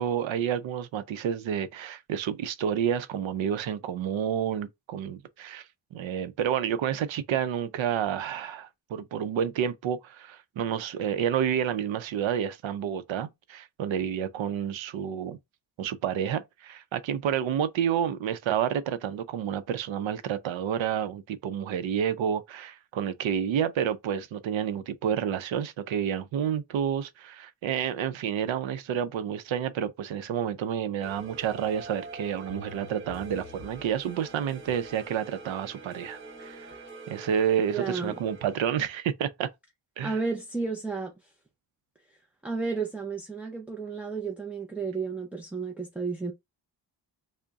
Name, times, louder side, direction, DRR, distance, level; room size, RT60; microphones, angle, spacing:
voice 1, 0.0-15.4 15.8-36.7 37.1-39.5 40.0-40.2, right 8 dB, 85° right, 0.6 m, -29 dB
sound 1, 31.0-38.7, right 2 dB, 25° right, 1.6 m, -44 dB
voice 2, 37.7-38.2 40.0-41.1 42.4-46.3, right 4 dB, 5° right, 0.4 m, -32 dB
3.5 x 2.1 x 3.9 m
wide cardioid pair, 150°, 45 cm